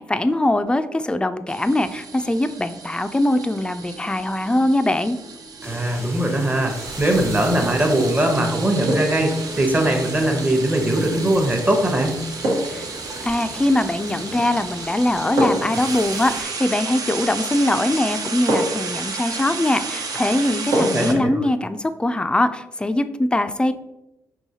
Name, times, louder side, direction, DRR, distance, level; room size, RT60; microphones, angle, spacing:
voice 1, 0.0-5.2 12.7-12.9 13.2-23.7, left 1 dB, 15° left, 11 dB, 0.3 m, -22 dB
sound 1, 1.5-21.1, right 4 dB, 60° right, 0.5 m, -33 dB
voice 2, 5.6-12.3 20.8-21.4, right 1 dB, 20° right, 4 dB, 0.9 m, -21 dB
sound 2, 5.6-16.4, right 1 dB, 40° right, 1.1 m, -38 dB
sound 3, 8.9-9.3 11.4-11.6 12.4-12.9 14.2-14.6 15.4-15.8 17.5-17.6 18.5-18.9 20.7-21.2 21.5-21.6, right 1 dB, 80° right, 1.2 m, -24 dB
4.6 x 3.0 x 2.8 m, 0.96 s
supercardioid pair, 55°, 7 cm